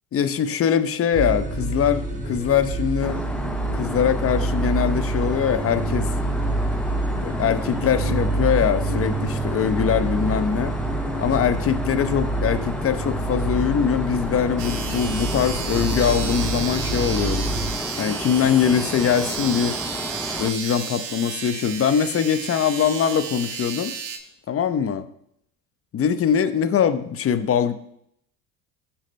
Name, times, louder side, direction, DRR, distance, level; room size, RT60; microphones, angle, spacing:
voice 1, 0.1-3.2 3.7-6.1 7.1-10.8 11.2-17.6 18.0-19.8 20.4-23.9 24.5-25.1 25.9-27.7, left 8 dB, 30° left, 11 dB, 0.8 m, -22 dB
sound 1, 1.1-17.7, right 2 dB, 20° right, 4.2 m, -27 dB
Aircraft, 3.0-20.5, left 1 dB, ahead, 0.6 m, -33 dB
sound 2, 14.6-24.2, right 7 dB, 75° right, 1.2 m, -32 dB
18.0 x 7.2 x 2.2 m, 0.72 s
hypercardioid pair, 75°, 42 cm